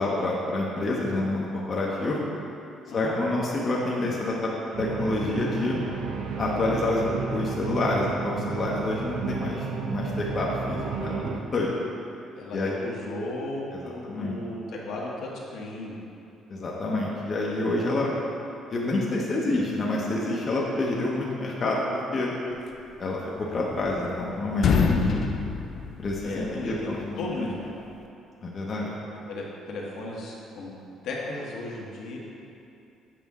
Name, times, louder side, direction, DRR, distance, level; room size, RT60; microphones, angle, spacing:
voice 1, 0.0-2.2 2.9-4.5 4.8-5.8 6.4-11.7 12.5-12.7 13.7-14.4 16.5-18.1 18.7-22.3 23.0-25.3 26.0-27.5 28.4-28.9, left 2 dB, 35° left, -4 dB, 0.9 m, -28 dB
sound 1, 4.7-11.4, right 5 dB, 75° right, 0.5 m, -32 dB
voice 2, 12.3-16.0 17.9-18.1 26.2-26.9 27.2-27.7 29.3-30.7 31.0-32.2, left 2 dB, 70° left, -3 dB, 1.2 m, -35 dB
sound 2, 23.4-24.2 24.5-26.7, left 5 dB, 55° left, 0.5 m, -25 dB
7.5 x 5.0 x 3.6 m, 2.7 s
cardioid pair, 110°, 0 cm